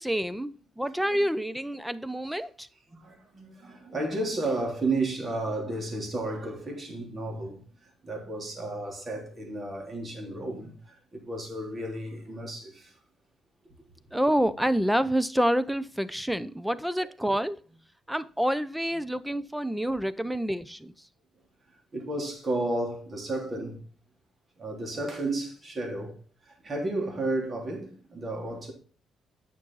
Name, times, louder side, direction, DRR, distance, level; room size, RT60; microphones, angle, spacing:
voice 1, 0.0-2.7 14.1-17.6 18.1-20.9, equal, 5° right, 0.7 m, -28 dB
voice 2, 3.0-7.6 8.0-10.7 11.1-12.9 21.9-23.8 24.6-26.1 26.6-28.7, right 2 dB, 35° right, 3.4 m, -32 dB
9.4 x 6.2 x 4.0 m
cardioid pair, 90°, 0 cm